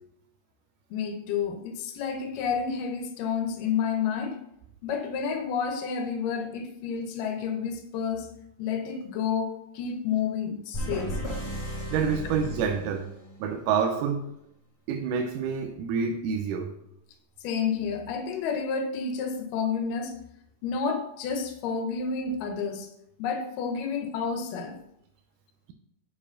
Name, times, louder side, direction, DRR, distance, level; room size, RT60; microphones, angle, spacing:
voice 1, 0.9-4.4 4.8-8.3 8.6-11.2 17.4-20.2 20.6-22.9 23.2-24.8, left 6 dB, 90° left, 2.5 m, -30 dB
sound 1, 10.7-13.5, equal, 20° left, 0.7 m, -35 dB
voice 2, 11.9-13.1 13.4-14.3 14.9-16.7, right 6 dB, 85° right, 2.2 m, -27 dB
6.9 x 4.9 x 5.7 m
omnidirectional pair, 3.7 m